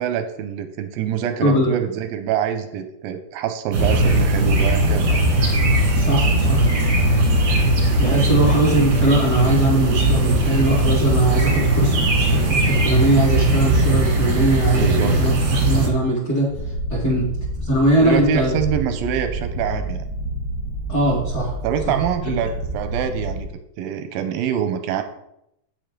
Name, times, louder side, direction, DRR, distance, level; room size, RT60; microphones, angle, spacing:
voice 1, 0.0-5.2 14.7-15.1 17.1-17.2 18.0-20.0 21.6-25.0, right 9 dB, 80° right, 7 dB, 2.1 m, -25 dB
voice 2, 1.4-1.7 6.0-6.7 8.0-16.5 16.9-17.3 17.6-18.5 20.9-21.5 21.9-22.0, right 1 dB, 30° left, -5 dB, 1.9 m, -20 dB
sound 1, 3.7-15.9, right 1 dB, 50° right, 1.3 m, -18 dB
Purr, 16.5-23.5, right 1 dB, 60° left, 1.2 m, -29 dB
8.6 x 8.4 x 3.7 m, 0.81 s
omnidirectional pair, 4.8 m